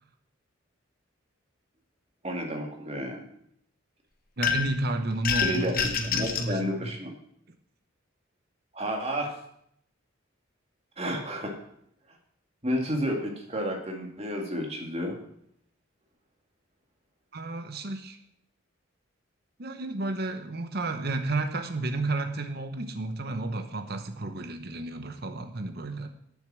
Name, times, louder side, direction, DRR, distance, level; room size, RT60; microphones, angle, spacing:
voice 1, 2.2-3.2 5.4-5.7 6.0-7.1 8.7-9.4 11.0-11.5 12.6-15.2, equal, 30° right, 1 dB, 2.2 m, -31 dB
sound 1, 4.4-4.8 5.2-6.5, left 7 dB, 45° left, 1.1 m, -27 dB
voice 2, 4.4-6.9 17.3-18.2 19.6-26.1, right 2 dB, 50° right, 7 dB, 0.9 m, -32 dB
9.9 x 7.0 x 7.6 m, 0.71 s
head